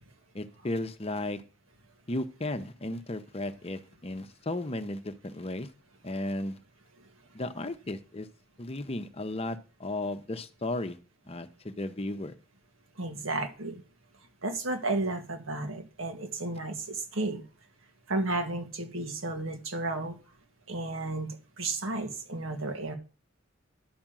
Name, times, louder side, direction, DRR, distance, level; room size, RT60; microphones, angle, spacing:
voice 1, 0.3-1.4 2.1-5.7 6.0-6.6 7.3-8.3 8.6-11.0 11.3-12.3, left 1 dB, 30° left, 0.8 m, -35 dB
voice 2, 13.0-13.8 14.4-17.4 18.1-20.2 20.7-23.0, right 2 dB, 90° right, 2.0 m, -33 dB
11.0 x 5.2 x 7.4 m
head